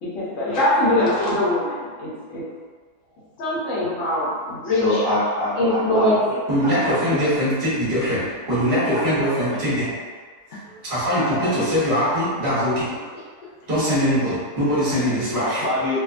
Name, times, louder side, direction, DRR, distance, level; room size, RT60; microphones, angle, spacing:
voice 1, 0.0-2.4 3.4-4.8 5.6-6.2, left 1 dB, 60° left, -8 dB, 0.9 m, -22 dB
voice 2, 4.3-7.3 8.9-9.1 9.5-9.6 11.2-11.7 15.4-16.0, left 1 dB, 85° left, -10 dB, 0.4 m, -26 dB
voice 3, 6.5-9.9 10.8-12.9 13.7-15.6, equal, 40° right, -9 dB, 1.0 m, -22 dB
2.6 x 2.1 x 2.3 m, 1.5 s
omnidirectional pair, 1.7 m